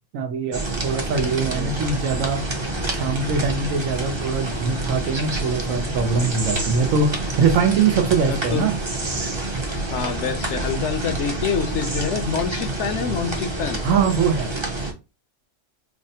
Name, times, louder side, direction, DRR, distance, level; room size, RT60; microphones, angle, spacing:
voice 1, 0.1-2.4 2.9-8.8 13.8-14.5, right 5 dB, 90° right, 1.1 m, -22 dB
sound 1, 0.5-14.9, right 2 dB, 30° right, 0.6 m, -27 dB
voice 2, 8.3-8.7 9.9-13.8, left 7 dB, 70° left, 0.9 m, -26 dB
4.9 x 2.1 x 2.7 m
omnidirectional pair, 1.3 m